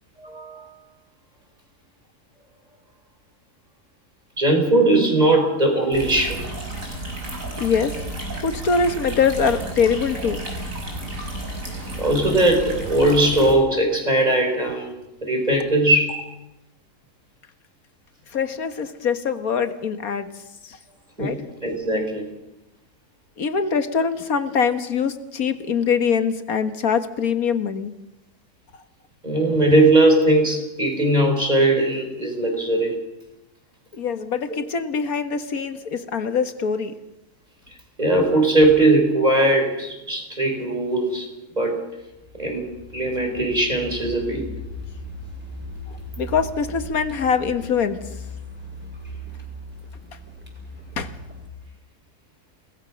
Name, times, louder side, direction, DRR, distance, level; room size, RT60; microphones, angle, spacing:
voice 1, 0.2-0.7 4.4-6.5 12.0-14.9 15.2-16.2 21.2-22.3 29.2-32.9 38.0-41.3 41.5-41.8 42.4-42.6 42.9-44.5, right 1 dB, 25° right, 2 dB, 5.7 m, -19 dB
sound 1, 5.9-13.5, right 1 dB, 55° right, 6.5 m, -32 dB
voice 2, 7.6-7.9 8.4-10.4 18.3-20.3 20.7-20.8 21.2-21.4 23.4-27.9 33.9-37.0 46.2-48.0 51.0-51.1, left 6 dB, 65° left, 10 dB, 1.9 m, -23 dB
Car, 42.0-51.5, left 1 dB, 5° right, 5.8 m, -38 dB
29.0 x 20.0 x 6.4 m, 0.92 s
omnidirectional pair, 1.6 m